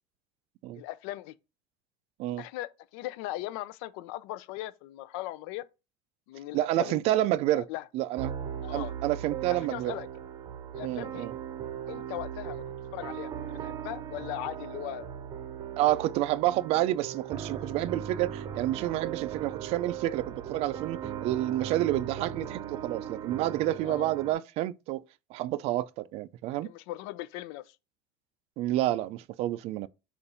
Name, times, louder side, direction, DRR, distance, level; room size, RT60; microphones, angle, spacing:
voice 1, 0.8-1.3 2.4-5.7 6.3-7.0 7.5-7.8 8.6-8.9 9.4-10.1 10.7-11.3 11.9-12.6 12.9-15.1 23.8-24.1 26.6-27.8, left 15 dB, 70° left, 0.5 m, -39 dB
voice 2, 6.5-7.7 7.9-8.3 8.7-9.9 10.8-11.4 15.8-25.0 25.3-26.7 28.6-29.9, right 14 dB, 50° right, 0.4 m, -29 dB
sound 1, 8.2-24.3, right 9 dB, 30° right, 0.7 m, -38 dB
6.9 x 2.5 x 5.5 m
cardioid pair, 160°, 14 cm